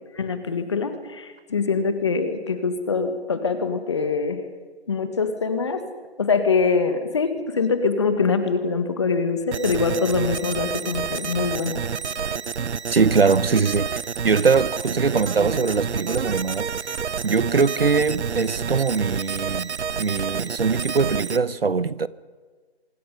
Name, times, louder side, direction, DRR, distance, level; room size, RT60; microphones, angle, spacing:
voice 1, 0.1-4.4 4.9-5.8 6.2-11.8, left 4 dB, 25° left, 1.6 m, -24 dB
sound 1, 9.5-21.4, right 6 dB, 85° right, 0.7 m, -29 dB
voice 2, 12.9-13.9 14.2-17.0 17.2-22.1, right 5 dB, 60° right, 0.9 m, -22 dB
25.5 x 23.0 x 5.4 m
figure-of-eight pair, 165°, 33 cm